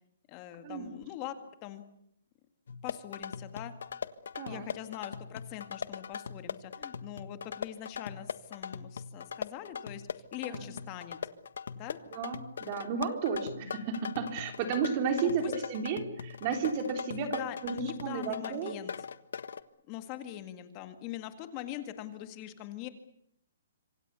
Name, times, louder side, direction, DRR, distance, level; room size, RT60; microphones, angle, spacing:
voice 1, 0.3-1.3 1.6-1.8 2.8-3.7 4.5-11.2 11.8-12.0 15.2-15.5 17.1-18.9 19.9-22.9, left 12 dB, 20° left, 9 dB, 2.0 m, -42 dB
sound 1, 2.7-19.6, left 6 dB, 70° left, 1.5 m, -41 dB
voice 2, 4.3-4.7 10.5-10.7 12.1-15.4 15.7-18.7, right 6 dB, 30° right, 6 dB, 3.4 m, -33 dB
26.5 x 25.5 x 7.0 m, 0.71 s
hypercardioid pair, 170°, 0 cm